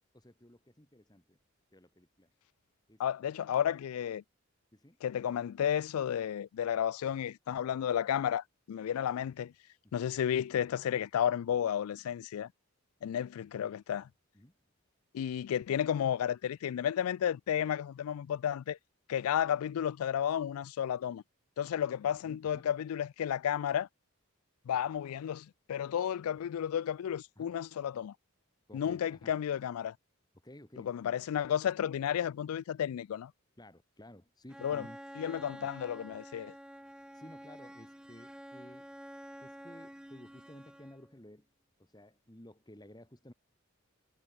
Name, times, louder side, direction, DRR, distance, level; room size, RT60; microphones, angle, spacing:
voice 1, 0.1-1.4 1.7-2.3 2.9-3.3 4.7-5.0 9.8-10.0 14.3-14.5 22.2-22.6 27.4-27.5 28.7-29.3 30.4-30.9 33.6-35.0 37.1-38.9 39.4-41.5 41.8-43.3, left 1 dB, 20° left, 1.9 m, -54 dB
voice 2, 3.0-4.2 5.0-9.5 9.9-12.5 13.0-14.1 15.1-18.8 19.1-21.2 21.6-23.9 24.7-28.1 28.7-29.9 30.8-33.3 34.6-34.8 35.2-36.5, left 9 dB, 85° left, 0.3 m, -32 dB
Bowed string instrument, 34.5-41.2, equal, 5° right, 1.4 m, -49 dB
head